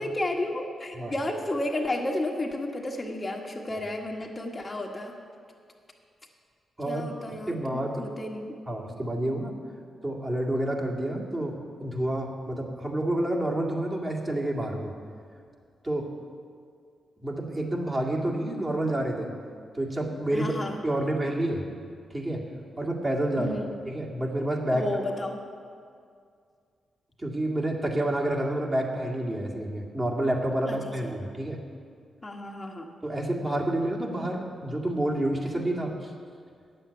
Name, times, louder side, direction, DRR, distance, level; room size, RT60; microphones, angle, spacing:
voice 1, 0.0-5.1 6.9-8.5 20.3-20.8 23.4-23.7 24.7-25.4 30.7-31.1 32.2-32.9, left 1 dB, 30° left, 1 dB, 1.4 m, -32 dB
voice 2, 6.8-8.0 8.7-9.6 10.0-14.9 15.8-16.1 17.2-19.3 19.7-20.5 20.8-21.7 22.1-22.5 22.8-23.6 23.9-24.9 27.2-31.6 33.0-36.1, right 1 dB, 30° right, -2 dB, 2.1 m, -29 dB
8.9 x 7.8 x 8.2 m, 2.2 s
supercardioid pair, 50°, 0 cm